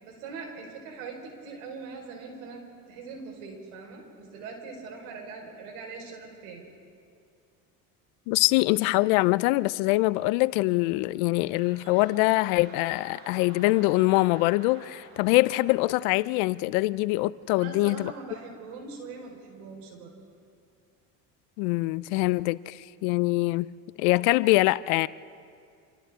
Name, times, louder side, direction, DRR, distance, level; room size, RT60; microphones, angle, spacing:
voice 1, 0.0-6.6 17.6-20.1, right 4 dB, 85° right, 4.8 m, -42 dB
voice 2, 8.3-18.1 21.6-23.7 24.0-25.1, left 20 dB, 80° left, 0.6 m, -24 dB
sound 1, 10.8-17.4 17.9-18.0, right 2 dB, 55° right, 5.1 m, -51 dB
29.5 x 27.0 x 3.7 m
supercardioid pair, 80°, 43 cm